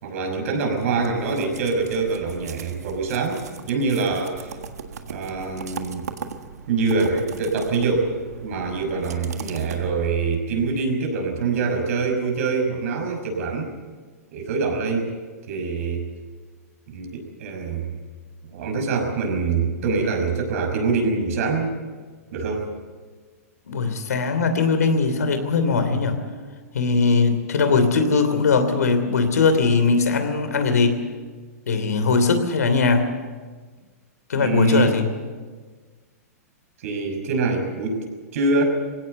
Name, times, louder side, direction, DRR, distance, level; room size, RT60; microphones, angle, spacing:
voice 1, 0.0-4.5 5.1-6.1 6.7-8.1 8.4-13.7 14.3-15.1 15.5-16.1 16.9-17.9 18.5-21.7 22.3-22.7 34.4-35.0 36.8-38.0 38.3-38.6, right 4 dB, 60° right, 3 dB, 5.8 m, -24 dB
sound 1, 0.6-10.4, right 6 dB, 80° right, 1.7 m, -39 dB
voice 2, 23.7-26.2 26.7-31.0 31.7-33.1 34.3-35.1, left 4 dB, 80° left, 8 dB, 2.9 m, -20 dB
21.0 x 17.0 x 8.0 m, 1.5 s
hypercardioid pair, 120°, 9 cm